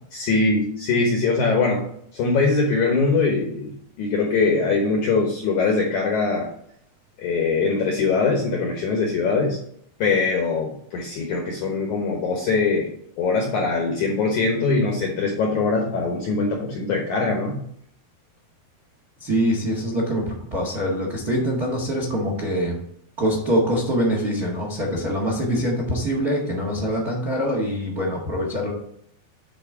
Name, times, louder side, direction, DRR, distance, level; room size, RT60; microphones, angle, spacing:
voice 1, 0.1-1.8 2.1-3.7 4.0-6.5 7.2-9.6 10.0-12.9 13.2-17.6, left 4 dB, 70° left, 0 dB, 1.9 m, -22 dB
voice 2, 19.2-22.8 23.2-28.7, equal, 55° right, -1 dB, 1.0 m, -24 dB
9.8 x 4.3 x 4.9 m, 0.68 s
omnidirectional pair, 4.9 m